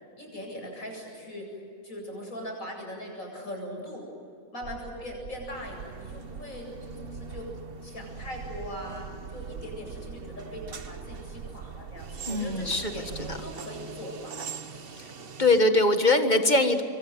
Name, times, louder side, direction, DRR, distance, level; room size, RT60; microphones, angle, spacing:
voice 1, 0.2-1.5 1.8-4.1 4.5-7.5 7.8-14.4 14.6-15.0, equal, 70° left, 0 dB, 8.6 m, -40 dB
sound 1, 4.6-13.6, right 7 dB, 85° right, 1.5 m, -43 dB
sound 2, 5.5-15.6, right 5 dB, 45° right, 1.2 m, -44 dB
voice 2, 12.3-13.4 15.0-15.1 15.4-16.8, left 2 dB, 30° left, 7 dB, 1.8 m, -23 dB
27.0 x 24.0 x 8.1 m, 2.5 s
omnidirectional pair, 1.5 m